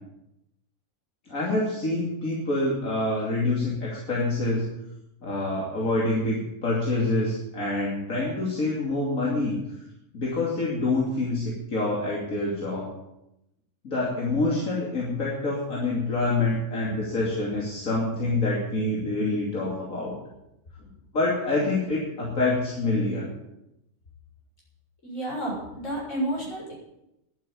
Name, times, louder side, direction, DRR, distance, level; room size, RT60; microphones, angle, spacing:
voice 1, 1.3-4.7 5.2-9.6 10.1-12.9 13.8-20.2 21.1-23.3, left 2 dB, 85° left, -4 dB, 3.2 m, -26 dB
voice 2, 25.0-26.7, right 1 dB, 60° left, -4 dB, 7.3 m, -31 dB
11.0 x 9.2 x 9.9 m, 0.87 s
omnidirectional pair, 1.4 m